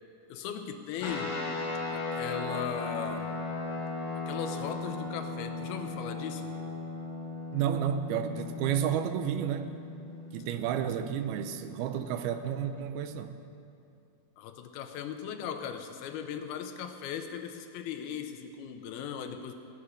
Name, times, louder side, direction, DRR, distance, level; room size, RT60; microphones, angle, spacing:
voice 1, 0.3-1.4 1.9-3.3 4.3-6.5 14.4-19.5, left 8 dB, 85° left, 6 dB, 2.8 m, -38 dB
sound 1, 1.0-12.7, left 3 dB, 40° left, 2.6 m, -37 dB
voice 2, 7.5-9.7 10.3-13.4, right 9 dB, 90° right, 9 dB, 2.6 m, -31 dB
17.5 x 9.6 x 6.5 m, 2.7 s
omnidirectional pair, 4.4 m